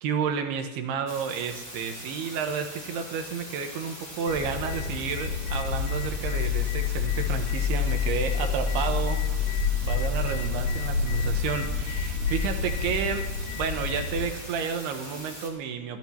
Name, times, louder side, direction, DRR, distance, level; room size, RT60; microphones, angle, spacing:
voice 1, 0.0-9.2 9.8-13.3 13.6-16.0, right 6 dB, 75° right, 5 dB, 2.6 m, -31 dB
sound 1, 1.1-15.5, left 1 dB, 25° left, 0.8 m, -42 dB
sound 2, 4.3-14.3, left 5 dB, 90° left, 4.3 m, -28 dB
22.5 x 13.5 x 2.8 m, 1.2 s
omnidirectional pair, 5.5 m